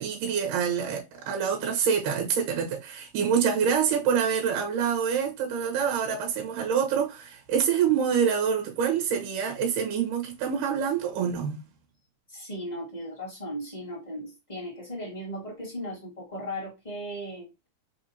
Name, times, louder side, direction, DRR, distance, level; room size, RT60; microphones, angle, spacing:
voice 1, 0.0-11.6, right 7 dB, 75° right, 2.5 m, -26 dB
voice 2, 12.3-17.5, equal, 15° left, 1.6 m, -37 dB
5.6 x 2.7 x 2.7 m
omnidirectional pair, 3.9 m